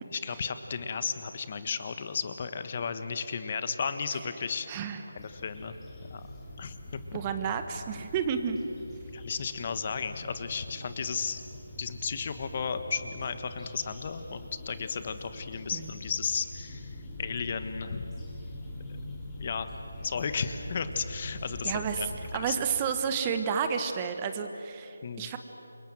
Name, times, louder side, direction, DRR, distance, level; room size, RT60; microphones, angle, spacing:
voice 1, 0.1-4.7 5.1-5.7 6.1-6.2 6.6-6.7 9.1-11.4 11.8-16.9 17.2-18.1 19.4-19.7 20.0-22.1 22.3-22.6 25.0-25.3, left 6 dB, 35° left, 10 dB, 1.4 m, -34 dB
voice 2, 4.7-5.0 7.1-8.6 15.7-15.9 21.6-25.4, right 7 dB, 20° right, 8 dB, 1.4 m, -31 dB
sound 1, 5.2-22.4, left 1 dB, 10° left, 4.0 m, -43 dB
28.5 x 24.0 x 7.8 m, 3.0 s
figure-of-eight pair, 160°, 0 cm